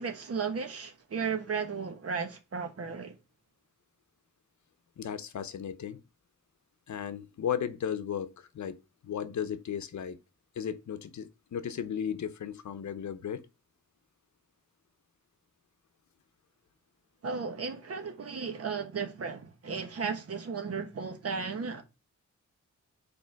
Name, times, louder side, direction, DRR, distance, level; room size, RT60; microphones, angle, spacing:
voice 1, 0.0-3.1 17.2-21.8, right 5 dB, 50° right, 1.2 m, -35 dB
voice 2, 5.0-6.0 6.9-10.2 10.6-13.5, left 8 dB, 70° left, 0.8 m, -35 dB
5.3 x 4.3 x 5.8 m
wide cardioid pair, 155°, 30 cm